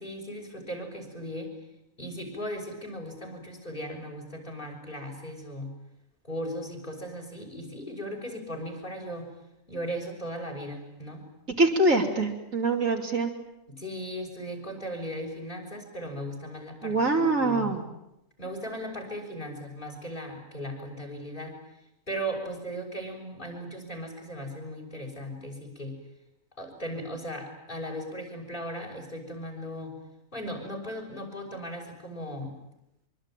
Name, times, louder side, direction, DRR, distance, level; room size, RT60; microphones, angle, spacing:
voice 1, 0.0-1.5 2.0-5.7 6.2-9.3 9.7-11.2 13.7-17.7 18.4-21.6 22.1-25.9 26.6-29.9 30.3-32.5, equal, 35° left, 3 dB, 6.6 m, -37 dB
voice 2, 11.6-13.3 16.8-17.8, right 2 dB, 70° right, 0 dB, 3.5 m, -24 dB
25.0 x 24.5 x 9.2 m, 0.87 s
omnidirectional pair, 1.4 m